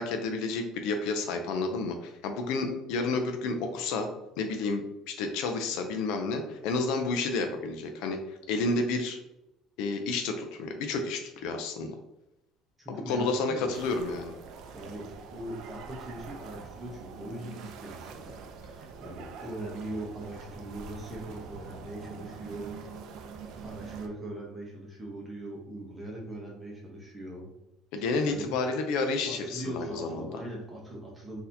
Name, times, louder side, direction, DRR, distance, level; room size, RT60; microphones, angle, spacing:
voice 1, 0.0-4.1 4.4-9.2 9.8-11.9 12.9-14.3 27.9-30.3, left 3 dB, 80° left, 5 dB, 0.4 m, -30 dB
voice 2, 12.8-13.7 14.7-23.0 23.6-27.5 28.0-28.5 29.3-31.4, right 1 dB, 15° right, -3 dB, 0.9 m, -41 dB
sound 1, 13.7-24.1, right 6 dB, 65° right, 0.4 m, -44 dB
4.0 x 2.7 x 2.7 m, 0.91 s
cardioid pair, 130°, 0 cm